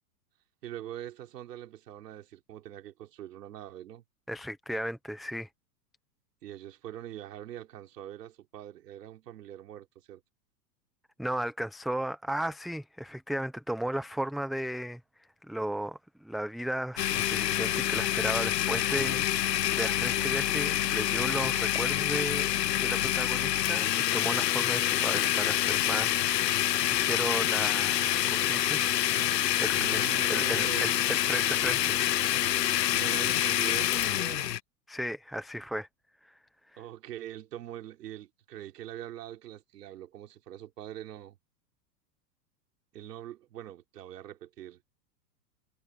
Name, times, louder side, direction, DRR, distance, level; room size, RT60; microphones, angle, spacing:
voice 1, 0.6-4.0 6.4-10.2 29.7-31.0 32.9-34.6 36.8-41.4 42.9-44.8, right 12 dB, 75° right, 3.8 m, -43 dB
voice 2, 4.3-5.5 11.2-15.0 15.4-29.2 29.6-32.0 34.9-35.9 36.2-36.4 36.7-36.8, right 1 dB, ahead, 0.7 m, -35 dB
Domestic sounds home sounds, 17.0-34.6, left 12 dB, 90° left, 1.1 m, -27 dB
hypercardioid pair, 130°, 48 cm